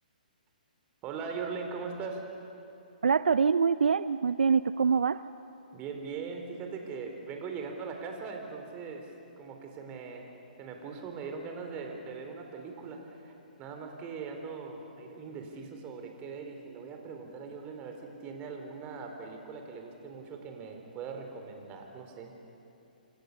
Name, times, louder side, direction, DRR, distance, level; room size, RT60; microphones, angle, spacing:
voice 1, 1.0-2.2 5.7-9.1 9.4-10.3 10.6-13.3 13.6-22.3, right 5 dB, 25° right, 3 dB, 4.1 m, -40 dB
voice 2, 3.0-5.2, right 6 dB, 75° right, 14 dB, 0.5 m, -25 dB
28.5 x 26.5 x 6.8 m, 2.8 s
hypercardioid pair, 135°, 5 cm